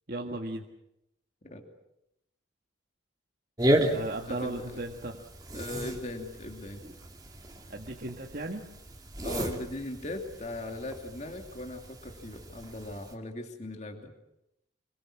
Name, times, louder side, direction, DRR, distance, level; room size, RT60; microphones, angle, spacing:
voice 1, 0.1-0.7 3.8-5.2 7.7-8.6, right 2 dB, 50° right, 1 dB, 1.8 m, -36 dB
sound 1, 3.6-13.1, right 1 dB, 20° right, 2.7 m, -34 dB
voice 2, 4.3-4.8 5.5-6.8 9.2-14.1, left 2 dB, 35° left, 3 dB, 2.9 m, -39 dB
26.5 x 23.0 x 7.6 m, 0.83 s
head